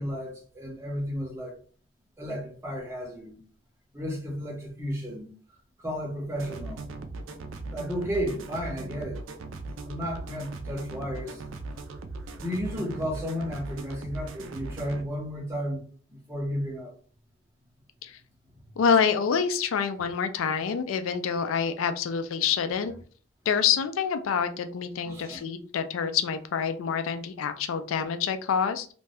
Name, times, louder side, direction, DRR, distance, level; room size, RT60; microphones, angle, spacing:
voice 1, 0.0-1.5 2.2-3.4 3.9-5.3 5.8-6.8 7.7-9.2 9.9-11.4 12.4-15.8 16.1-16.9 25.1-25.4, equal, 15° right, 0.8 m, -33 dB
sound 1, 6.4-15.0, right 3 dB, 80° right, 0.4 m, -39 dB
voice 2, 18.8-22.9 23.5-28.9, left 7 dB, 85° left, 0.4 m, -27 dB
2.6 x 2.2 x 3.3 m
head